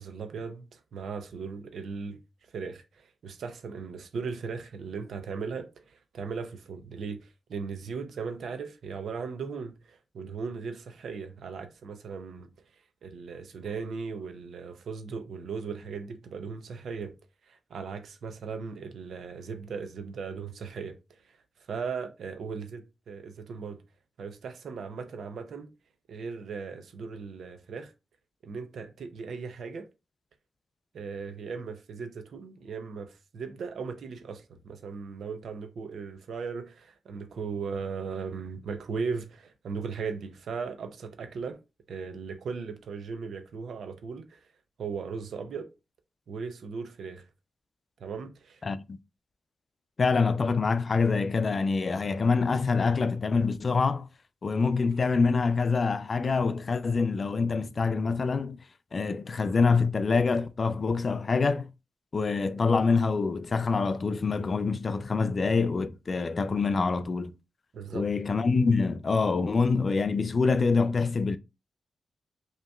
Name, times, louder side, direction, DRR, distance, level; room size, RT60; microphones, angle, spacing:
voice 1, 0.0-2.2 2.5-12.5 13.0-17.1 17.5-21.0 21.2-21.4 21.7-23.8 24.2-25.7 26.1-27.9 28.4-29.9 30.9-41.6 41.9-44.5 44.8-45.7 46.3-47.2 48.0-48.6 67.7-68.1, right 5 dB, 80° right, 0.6 m, -37 dB
voice 2, 48.6-49.0 50.0-54.1 54.4-58.6 58.9-61.7 62.1-67.3 67.9-71.4, left 4 dB, 40° left, 0.3 m, -25 dB
5.2 x 2.9 x 2.3 m
wide cardioid pair, 140°, 0 cm